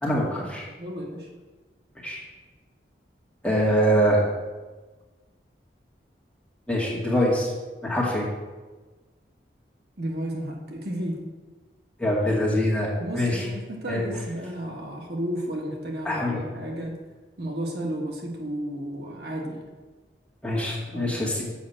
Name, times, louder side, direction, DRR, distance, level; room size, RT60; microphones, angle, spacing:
voice 1, 0.0-0.7 2.0-2.2 3.4-4.2 6.7-7.5 7.8-8.3 12.0-12.9 13.1-13.5 13.9-14.0 16.0-16.4 20.4-21.4, equal, 5° left, -6 dB, 2.2 m, -24 dB
voice 2, 0.8-1.3 10.0-11.2 13.0-17.0 17.4-19.6 20.9-21.2, right 1 dB, 65° right, 0 dB, 1.6 m, -33 dB
7.2 x 5.6 x 7.5 m, 1.3 s
head